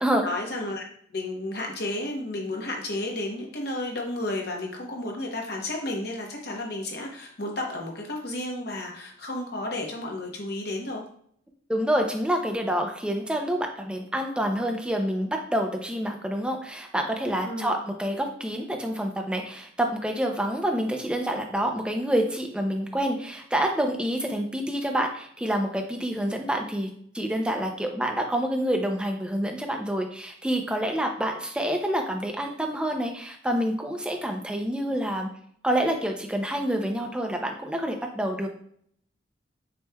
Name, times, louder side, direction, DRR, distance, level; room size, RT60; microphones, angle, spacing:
voice 1, 0.2-11.0 17.4-17.7, left 1 dB, 55° left, 1 dB, 1.0 m, -32 dB
voice 2, 11.7-26.9 27.1-35.3 35.6-38.5, right 1 dB, 5° right, 3 dB, 0.5 m, -27 dB
6.2 x 3.2 x 2.2 m, 0.63 s
head